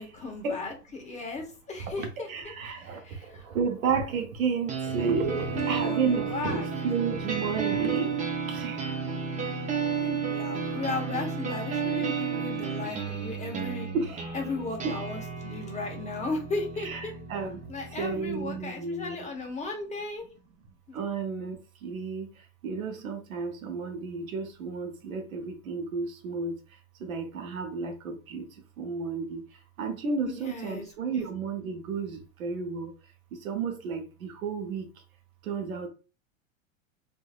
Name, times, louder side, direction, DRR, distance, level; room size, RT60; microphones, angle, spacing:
voice 1, 0.0-2.3 2.7-3.4 5.5-6.7 10.0-13.9 14.3-17.1 17.7-20.3 20.9-21.0 30.3-30.9 31.1-31.3, left 3 dB, 15° left, 0.8 m, -36 dB
voice 2, 2.0-3.0 3.5-8.1 8.5-8.8 13.9-14.2 16.8-17.6 18.0-19.3 20.9-21.6 21.8-22.3 22.6-26.5 27.0-28.4 28.8-29.4 29.8-32.9 33.4-34.8 35.5-35.9, right 5 dB, 80° right, 0.9 m, -32 dB
sound 1, 4.7-18.7, right 6 dB, 20° right, 0.6 m, -33 dB
3.1 x 2.6 x 2.3 m
hypercardioid pair, 100°, 41 cm